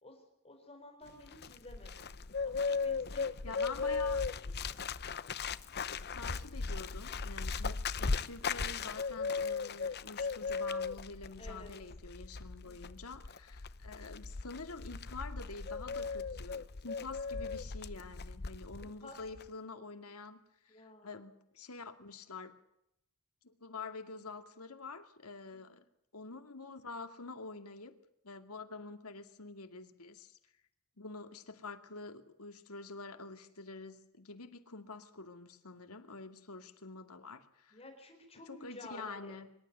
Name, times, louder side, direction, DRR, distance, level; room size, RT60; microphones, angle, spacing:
voice 1, 0.0-2.1 2.4-3.6 4.0-4.1 4.4-4.8 11.4-11.7 12.6-12.8 18.8-19.2 20.7-21.2 25.5-25.8 37.7-39.4, left 2 dB, 30° left, 4 dB, 4.3 m, -53 dB
Bird, 1.1-18.9 19.1-19.5, left 4 dB, 50° left, 0.9 m, -37 dB
voice 2, 3.4-4.2 6.1-20.4 20.6-22.5 23.4-25.8 26.1-27.9 28.2-30.4 31.0-37.8 38.5-39.5, left 3 dB, 90° left, 8 dB, 2.4 m, -47 dB
25.5 x 12.5 x 9.4 m, 0.78 s
head